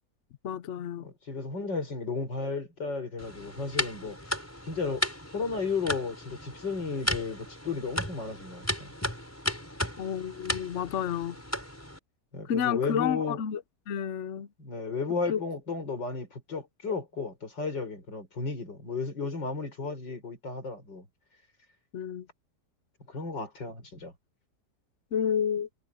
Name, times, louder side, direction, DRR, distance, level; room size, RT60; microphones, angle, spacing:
voice 1, 0.4-1.1 10.0-11.4 12.5-13.6 13.9-14.5 15.3-15.4 21.9-22.3 25.1-25.7, left 8 dB, 55° left, 0.9 m, -30 dB
voice 2, 1.0-4.3 4.7-5.1 5.3-8.9 12.3-13.4 14.6-21.1 23.1-24.1, left 4 dB, 85° left, 6.5 m, -34 dB
sound 1, 3.2-12.0, equal, 10° left, 4.9 m, -35 dB
omnidirectional pair, 1.9 m